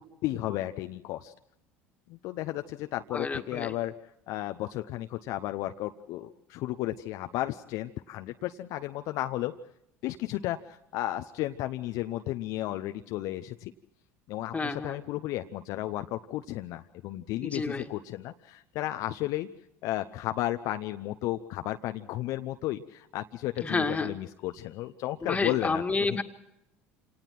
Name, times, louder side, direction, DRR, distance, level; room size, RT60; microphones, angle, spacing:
voice 1, 0.0-1.3 2.1-3.9 4.3-9.5 10.0-13.7 14.3-19.5 19.8-25.8 26.1-26.2, left 15 dB, 60° left, 8 dB, 0.8 m, -33 dB
voice 2, 3.1-3.7 14.5-15.0 17.4-17.9 23.6-24.2 25.2-26.2, left 3 dB, 20° left, 6 dB, 2.0 m, -30 dB
27.0 x 18.5 x 6.0 m, 0.82 s
hypercardioid pair, 70°, 7 cm